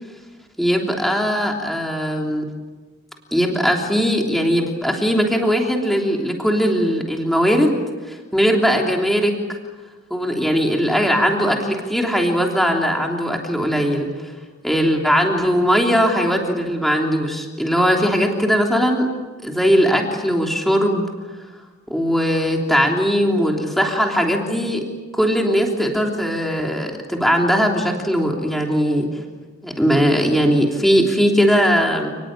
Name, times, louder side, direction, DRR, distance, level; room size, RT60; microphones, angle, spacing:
voice 1, 0.6-2.4 3.3-7.7 8.1-9.3 10.1-14.3 14.6-19.1 19.4-21.1 21.9-24.8 25.1-29.1 29.6-32.1, equal, ahead, 1 dB, 3.2 m, -19 dB
30.0 x 20.0 x 8.9 m, 1.3 s
head